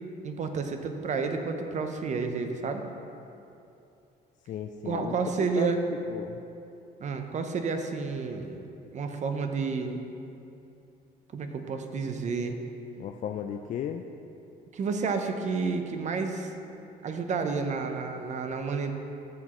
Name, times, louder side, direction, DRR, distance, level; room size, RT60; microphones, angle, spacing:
voice 1, 0.2-2.8 4.9-5.8 7.0-8.6 8.9-10.0 11.3-12.6 14.7-16.5 17.0-18.9, right 4 dB, 45° right, 6 dB, 0.7 m, -30 dB
voice 2, 4.5-6.4 13.0-14.0, left 8 dB, 45° left, 5 dB, 0.4 m, -35 dB
13.0 x 6.2 x 3.1 m, 2.8 s
cardioid pair, 110°, 17 cm